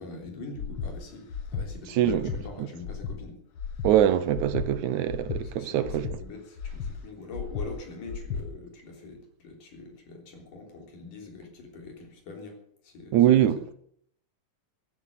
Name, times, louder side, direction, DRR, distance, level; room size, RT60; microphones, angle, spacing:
voice 1, 0.0-3.4 5.4-12.6 12.8-13.2 13.6-13.7, left 3 dB, 80° left, 5.1 m, -43 dB
Breathing, 0.5-0.9 1.3-1.7 2.0-2.4 2.8-3.2 3.6-3.9 4.3-4.7 5.1-5.4 5.8-6.2 6.6-6.9 7.3-7.7 8.1-8.4, left 6 dB, 50° left, 1.7 m, -34 dB
voice 2, 3.8-6.1 13.1-13.7, right 11 dB, 75° right, 2.1 m, -23 dB
14.5 x 12.5 x 6.7 m
omnidirectional pair, 3.7 m